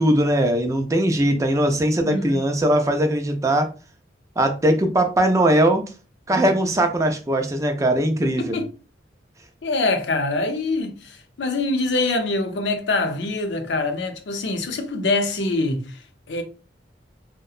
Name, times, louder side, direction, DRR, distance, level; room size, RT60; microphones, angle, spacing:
voice 1, 0.0-3.7 4.4-5.8 6.3-8.6, right 1 dB, 15° right, 0.4 m, -20 dB
voice 2, 2.0-2.4 6.3-6.7 8.2-8.7 9.6-16.4, left 2 dB, 75° left, 0.5 m, -25 dB
2.7 x 2.1 x 2.3 m
head